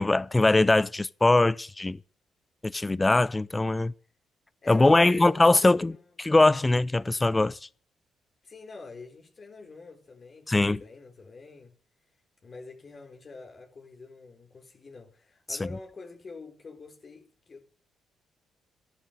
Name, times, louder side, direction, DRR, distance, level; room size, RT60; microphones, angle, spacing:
voice 1, 0.0-2.0 2.6-3.9 4.7-5.9 6.2-7.6 10.5-10.8, left 2 dB, 15° left, 0.6 m, -21 dB
voice 2, 4.6-6.0 8.4-11.7 12.4-17.6, left 3 dB, 40° left, 3.8 m, -46 dB
13.5 x 11.5 x 6.5 m
cardioid pair, 90°, 0 cm